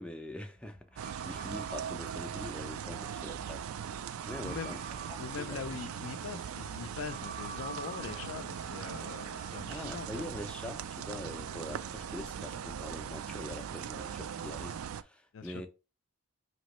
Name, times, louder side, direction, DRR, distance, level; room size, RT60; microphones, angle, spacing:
voice 1, 0.0-4.0 4.3-4.8 5.1-5.6 9.7-15.7, left 1 dB, 5° left, 0.4 m, -44 dB
sound 1, 0.6-10.0, right 4 dB, 40° right, 0.7 m, -50 dB
sound 2, 1.0-15.0, right 8 dB, 75° right, 0.3 m, -40 dB
voice 2, 4.4-4.8 5.2-10.3 15.3-15.7, left 5 dB, 60° left, 0.4 m, -42 dB
5.1 x 2.9 x 3.0 m
head